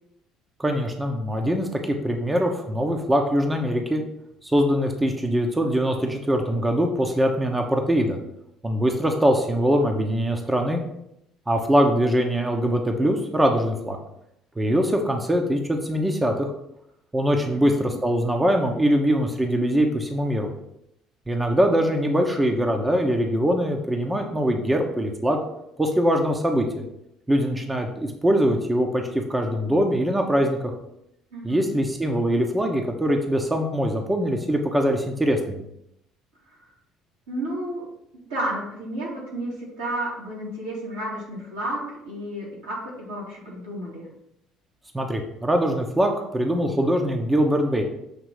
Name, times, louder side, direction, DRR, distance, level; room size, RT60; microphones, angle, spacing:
voice 1, 0.6-4.0 4.4-8.2 8.6-10.8 11.5-14.0 14.6-16.5 17.1-20.5 21.3-25.4 25.8-26.8 27.3-30.7 31.4-35.6 44.9-47.8, equal, 15° right, 3 dB, 0.9 m, -22 dB
voice 2, 17.5-17.9 31.3-31.8 36.5-36.7 37.3-37.9 38.3-44.1, right 1 dB, 85° right, -6 dB, 2.4 m, -32 dB
6.7 x 3.0 x 4.8 m, 0.80 s
hypercardioid pair, 60°, 0 cm